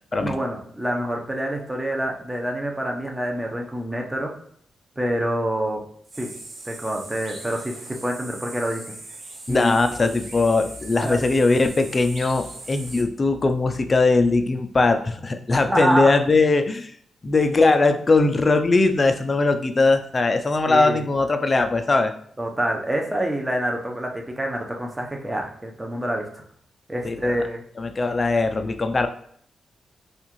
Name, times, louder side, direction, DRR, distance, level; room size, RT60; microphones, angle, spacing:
voice 1, 0.2-4.3 5.0-5.8 6.2-6.3 6.6-8.9 9.5-9.8 11.0-11.2 15.7-16.2 20.7-21.1 22.4-26.4 26.9-27.6, equal, 15° right, 1 dB, 0.7 m, -26 dB
sound 1, 6.1-13.0, right 2 dB, 65° right, 0.7 m, -40 dB
voice 2, 9.5-16.9 17.2-22.1 27.0-27.3 27.8-29.1, left 3 dB, 35° left, 7 dB, 0.4 m, -20 dB
3.4 x 2.4 x 3.0 m, 0.63 s
cardioid pair, 70°, 0 cm